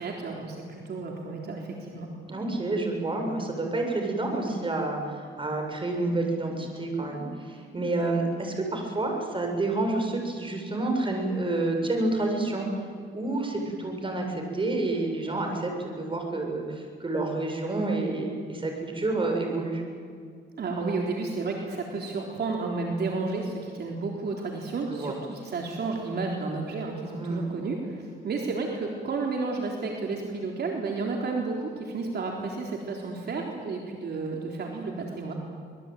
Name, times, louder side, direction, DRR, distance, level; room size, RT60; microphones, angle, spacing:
voice 1, 0.0-2.1 20.6-35.3, right 3 dB, 55° right, 0 dB, 3.8 m, -32 dB
voice 2, 2.3-12.9 13.1-19.8 24.9-25.1 27.2-27.5, right 2 dB, 25° right, 2 dB, 6.9 m, -29 dB
25.5 x 21.0 x 9.3 m, 2.3 s
cardioid pair, 90°, 20 cm